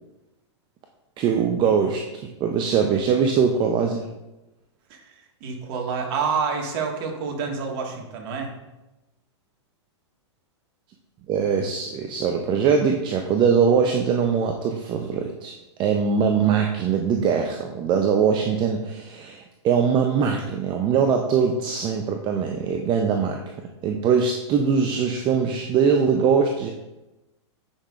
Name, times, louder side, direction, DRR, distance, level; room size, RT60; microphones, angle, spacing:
voice 1, 1.2-4.1 11.3-15.5 15.8-23.4 23.8-26.7, right 6 dB, 30° right, 3 dB, 0.6 m, -22 dB
voice 2, 5.4-8.5, right 5 dB, 50° right, 1 dB, 1.7 m, -28 dB
9.8 x 5.7 x 2.5 m, 1.0 s
hypercardioid pair, 115°, 15 cm